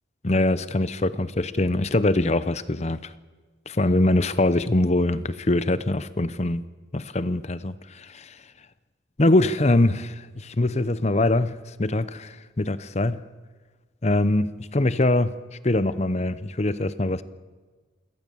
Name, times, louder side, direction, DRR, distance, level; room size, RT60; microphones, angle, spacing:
voice 1, 0.2-3.1 3.7-6.6 6.9-8.4 9.2-13.2 14.0-15.4 15.6-17.2, left 2 dB, 35° left, 0.8 m, -23 dB
28.0 x 17.5 x 7.1 m
head